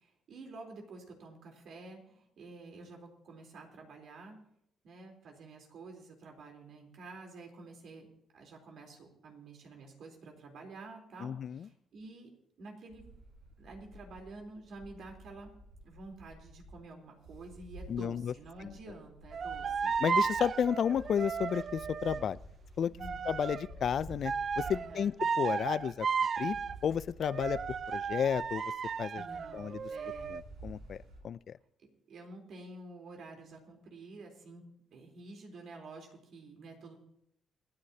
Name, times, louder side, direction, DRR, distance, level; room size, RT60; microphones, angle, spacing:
voice 1, 0.0-4.4 4.8-8.1 8.3-12.3 12.6-13.0 13.6-15.5 15.8-19.8 22.9-23.3 24.7-25.2 29.1-30.4 32.1-34.6 34.9-37.0, right 3 dB, 65° right, 2 dB, 3.7 m, -49 dB
voice 2, 11.2-11.7 17.9-18.3 18.6-18.7 20.0-22.4 22.8-22.9 23.3-26.1 26.4-26.6 26.8-27.6 27.9-28.6 29.0-29.2 29.5-29.8 30.3-31.0 31.2-31.5, left 8 dB, 60° left, 19 dB, 0.4 m, -32 dB
sound 1, 12.9-31.2, right 1 dB, 85° right, 5.8 m, -51 dB
sound 2, 19.3-22.3 23.0-23.8 24.2-26.8 27.2-30.4, right 6 dB, 50° right, 0.4 m, -34 dB
28.0 x 9.7 x 2.8 m, 0.74 s
cardioid pair, 75°, 0 cm